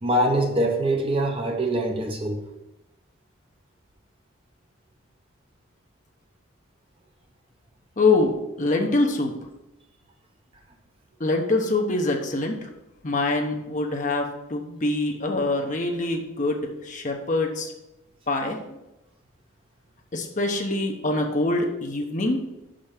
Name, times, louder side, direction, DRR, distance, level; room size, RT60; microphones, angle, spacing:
voice 1, 0.0-2.4, right 1 dB, 25° right, 3 dB, 0.7 m, -23 dB
voice 2, 8.0-9.3 11.2-12.7 13.0-17.7 18.3-18.8 20.1-22.5, left 2 dB, 35° left, 2 dB, 0.9 m, -24 dB
6.0 x 5.1 x 5.8 m, 0.94 s
head